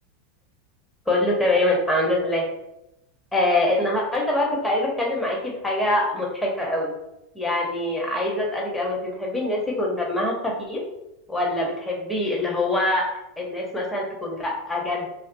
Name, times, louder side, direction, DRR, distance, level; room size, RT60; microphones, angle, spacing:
voice 1, 1.1-2.4 3.3-6.9 7.3-10.8 11.3-13.0 13.4-15.1, left 1 dB, 10° left, -2 dB, 0.7 m, -24 dB
2.4 x 2.3 x 2.5 m, 0.89 s
supercardioid pair, 115°, 0 cm